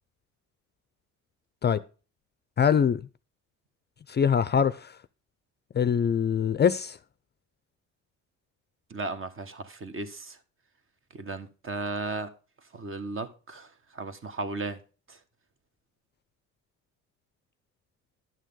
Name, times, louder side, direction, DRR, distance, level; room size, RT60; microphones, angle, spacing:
voice 1, 2.6-3.0 4.1-4.9 5.7-7.0, left 7 dB, 30° left, 0.5 m, -23 dB
voice 2, 8.9-10.4 11.1-12.3 12.7-14.8 15.1-15.2, right 3 dB, 40° right, 1.4 m, -35 dB
11.0 x 6.4 x 3.7 m
cardioid pair, 90°, 32 cm